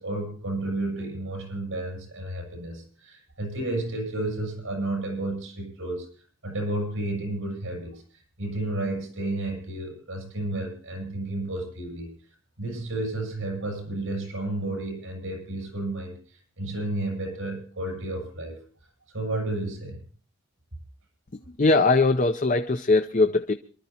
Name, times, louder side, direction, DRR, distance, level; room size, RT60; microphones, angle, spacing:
voice 1, 0.0-6.1 6.4-8.0 8.4-12.1 12.6-18.6 19.1-20.0, right 2 dB, 75° right, 2 dB, 7.7 m, -32 dB
voice 2, 21.6-23.5, left 3 dB, 35° left, 8 dB, 0.6 m, -20 dB
27.0 x 13.5 x 2.8 m, 0.42 s
head